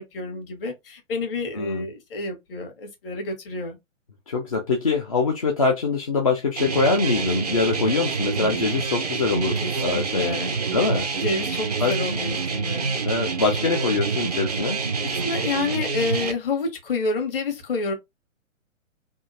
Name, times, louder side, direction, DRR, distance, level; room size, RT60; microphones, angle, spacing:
voice 1, 0.0-3.8 9.6-10.9 11.1-12.9 15.1-17.9, left 3 dB, 45° left, 1.5 m, -29 dB
voice 2, 1.6-1.9 4.3-10.4 10.7-11.1 11.8-11.9 13.0-14.8, left 4 dB, 30° left, 0.4 m, -23 dB
sound 1, 6.6-16.3, right 5 dB, 30° right, 0.4 m, -27 dB
3.5 x 2.5 x 2.6 m
figure-of-eight pair, 130°, 40 cm